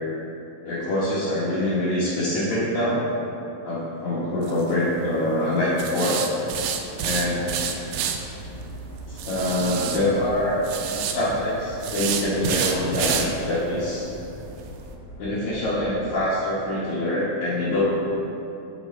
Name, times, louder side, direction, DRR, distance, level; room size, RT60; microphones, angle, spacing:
voice 1, 0.6-3.0 3.6-6.2 7.0-7.5 9.1-10.6 11.1-14.1 15.2-17.9, left 1 dB, 65° left, -9 dB, 2.2 m, -24 dB
sound 1, 4.4-4.7 5.8-8.2 9.2-10.0 10.6-11.1 11.8-13.3 13.7-13.8 14.2-14.3 14.7-14.8, right 8 dB, 80° right, 1.9 m, -27 dB
sound 2, 8.3-16.3, right 1 dB, 85° left, 3.0 m, -41 dB
7.2 x 5.3 x 4.2 m, 2.9 s
omnidirectional pair, 3.9 m